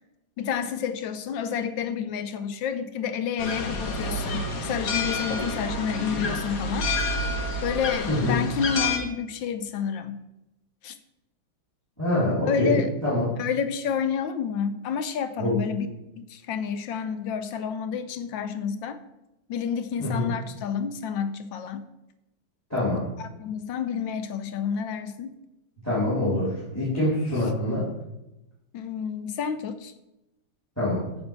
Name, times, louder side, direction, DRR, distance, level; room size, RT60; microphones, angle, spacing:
voice 1, 0.4-6.9 7.6-10.2 10.8-10.9 12.4-12.9 13.4-15.9 16.2-19.0 19.5-21.9 23.2-25.3 28.7-29.9, left 7 dB, 70° left, 11 dB, 1.3 m, -29 dB
sound 1, 3.4-9.0, left 2 dB, 55° left, 1.2 m, -29 dB
voice 2, 8.1-8.4 12.0-13.3 15.4-15.6 20.0-20.3 22.7-23.1 25.8-27.9 30.8-31.0, left 1 dB, 5° left, -8 dB, 3.3 m, -25 dB
9.0 x 5.7 x 6.0 m, 0.93 s
omnidirectional pair, 2.3 m